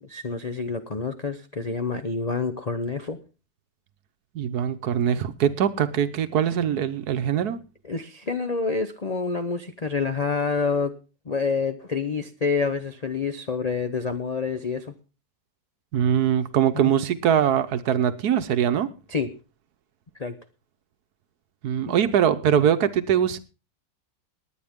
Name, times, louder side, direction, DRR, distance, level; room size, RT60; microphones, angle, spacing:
voice 1, 0.0-3.2 7.8-11.0 11.3-14.9 16.7-16.9 19.1-19.3 20.2-20.3, left 4 dB, 55° left, 8 dB, 0.4 m, -27 dB
voice 2, 4.3-7.6 15.9-18.9 21.6-23.4, right 9 dB, 65° right, 11 dB, 1.3 m, -22 dB
19.5 x 9.5 x 3.6 m, 0.33 s
omnidirectional pair, 1.9 m